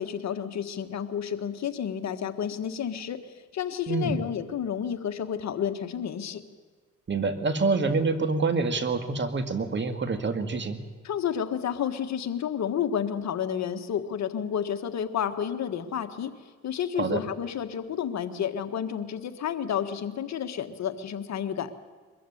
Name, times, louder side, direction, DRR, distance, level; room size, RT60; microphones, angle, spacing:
voice 1, 0.0-6.4 11.0-21.7, left 8 dB, 60° left, 8 dB, 1.6 m, -31 dB
voice 2, 3.9-4.2 7.1-10.8 17.0-17.2, right 4 dB, 40° right, 9 dB, 2.2 m, -26 dB
22.5 x 14.5 x 10.0 m, 1.5 s
cardioid pair, 90°, 30 cm